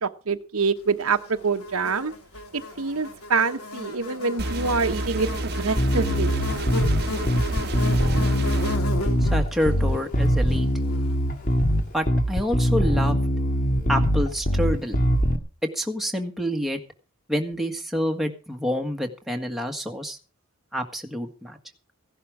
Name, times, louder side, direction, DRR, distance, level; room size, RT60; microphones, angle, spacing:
voice 1, 0.0-2.1 2.5-6.3, right 4 dB, 75° right, 9 dB, 1.0 m, -26 dB
Buzz, 1.1-11.5, left 2 dB, 80° left, 3.0 m, -35 dB
sound 1, 4.4-8.8, right 1 dB, 45° right, 1.1 m, -30 dB
Bass guitar, 5.8-15.4, equal, 35° left, 1.8 m, -22 dB
voice 2, 9.2-10.7 11.9-13.2 13.9-15.0 15.7-16.8 17.3-20.2 20.7-21.6, equal, ahead, 2 dB, 1.6 m, -27 dB
16.0 x 11.5 x 4.9 m, 0.33 s
head